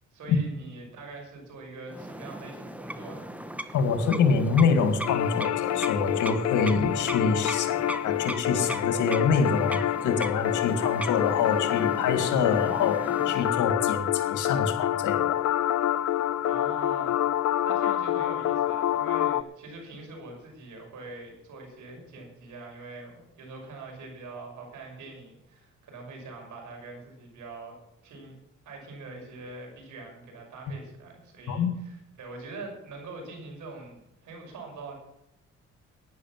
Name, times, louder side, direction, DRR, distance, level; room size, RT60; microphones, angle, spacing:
voice 1, 0.1-3.3 16.4-17.2 17.6-27.8 28.0-28.3 28.6-34.9, right 3 dB, 75° right, 1 dB, 6.2 m, -43 dB
sound 1, 1.9-13.7, right 1 dB, 5° right, 1.1 m, -38 dB
voice 2, 3.7-7.8 8.0-15.4 31.5-31.7, left 5 dB, 80° left, 7 dB, 2.0 m, -26 dB
sound 2, 5.0-19.4, left 12 dB, 60° left, 0.6 m, -27 dB
12.0 x 10.0 x 7.4 m, 0.83 s
cardioid pair, 90°, 30 cm